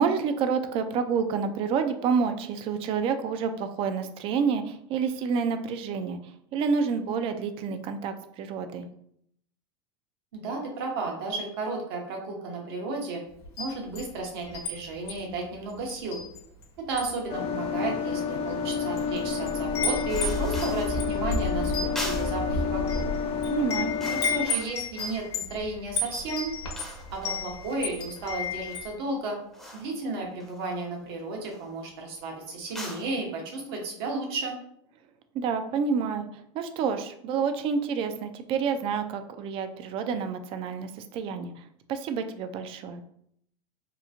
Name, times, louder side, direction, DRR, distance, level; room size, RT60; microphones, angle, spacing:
voice 1, 0.0-8.9 23.5-23.9 35.3-43.0, right 6 dB, 45° right, 9 dB, 0.4 m, -29 dB
voice 2, 10.3-13.2 13.6-16.2 16.9-23.0 24.1-26.5 27.1-29.4 29.7-34.6, right 3 dB, 65° right, 1 dB, 0.9 m, -33 dB
Wind chime, 13.4-14.7 15.1-15.3 15.9-16.6 16.9-17.2 18.0-18.1 18.7-19.2 19.4-28.9, left 3 dB, 85° left, 1.0 m, -33 dB
sound 1, 17.3-24.5, left 5 dB, 45° left, 0.4 m, -29 dB
sound 2, 20.1-21.1 22.0-22.5 23.2-23.4 23.7-25.4 25.9-28.9 29.5-30.0 30.4-31.0 31.4-31.7 32.6-33.2, equal, ahead, 0.6 m, -41 dB
2.9 x 2.3 x 2.6 m, 0.70 s
hypercardioid pair, 100°, 13 cm